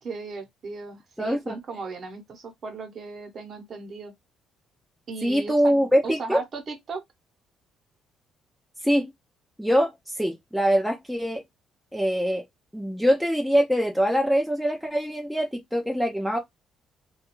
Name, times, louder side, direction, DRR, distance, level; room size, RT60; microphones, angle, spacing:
voice 1, 0.0-4.1 5.1-5.7 6.0-7.0, right 4 dB, 50° right, 0.9 m, -36 dB
voice 2, 1.2-1.6 5.2-6.4 8.8-9.1 9.6-11.4 11.9-12.4 12.7-16.4, equal, ahead, 0.5 m, -23 dB
2.4 x 2.3 x 2.9 m
cardioid pair, 100°, 0 cm